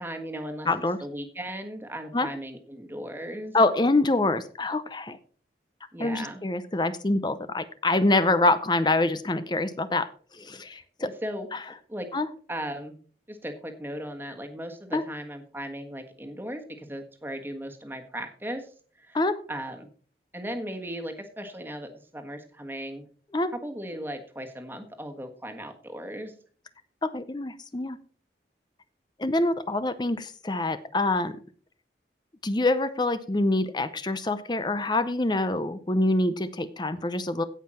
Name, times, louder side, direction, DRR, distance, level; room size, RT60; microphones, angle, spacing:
voice 1, 0.0-0.7 1.0-3.6 5.9-6.4 10.7-11.5 11.9-12.1 12.5-12.9 13.3-18.7 19.0-19.9 20.3-23.0 23.6-26.3, equal, 10° right, 4 dB, 1.4 m, -37 dB
voice 2, 0.7-1.0 2.1-2.3 3.5-5.2 6.0-10.1 10.3-11.1 11.5-11.6 12.1-12.3 14.9-15.0 19.1-19.4 23.3-23.5 27.0-28.0 29.2-31.4 32.4-37.4, left 2 dB, 25° left, 12 dB, 0.6 m, -25 dB
16.5 x 5.6 x 4.3 m, 0.43 s
head